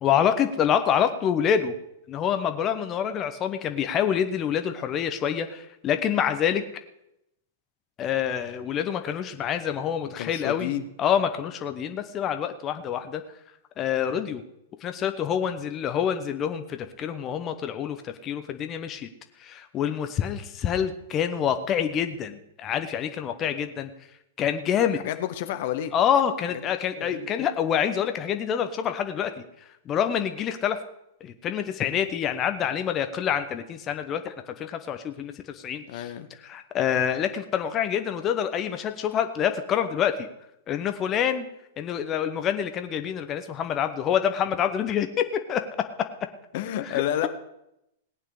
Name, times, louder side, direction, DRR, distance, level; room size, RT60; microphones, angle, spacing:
voice 1, 0.0-1.7 2.1-6.6 8.0-10.7 11.0-13.2 13.8-14.4 14.8-19.1 19.4-23.9 24.4-25.0 25.9-29.4 29.9-30.8 31.2-36.1 36.4-40.3 40.7-41.5 41.8-45.9 46.9-47.3, left 8 dB, 30° left, 8 dB, 1.1 m, -26 dB
voice 2, 10.2-10.8 24.9-25.9 27.0-27.3 35.9-36.3 46.5-47.3, left 11 dB, 55° left, 9 dB, 1.1 m, -30 dB
18.5 x 9.2 x 5.0 m, 0.82 s
figure-of-eight pair, 100°, 0 cm